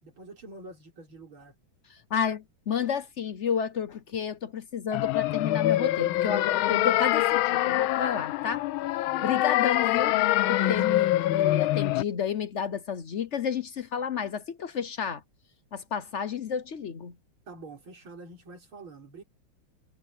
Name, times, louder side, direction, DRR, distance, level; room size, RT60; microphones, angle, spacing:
voice 1, 0.0-1.5 9.1-9.4 10.4-11.6 17.5-19.2, right 3 dB, 75° right, 5.1 m, -46 dB
voice 2, 1.9-8.6 9.2-10.2 10.5-15.2 15.7-17.1, left 7 dB, 60° left, 0.7 m, -31 dB
sound 1, 4.9-12.0, left 15 dB, 80° left, 1.4 m, -25 dB
omnidirectional pair, 2.3 m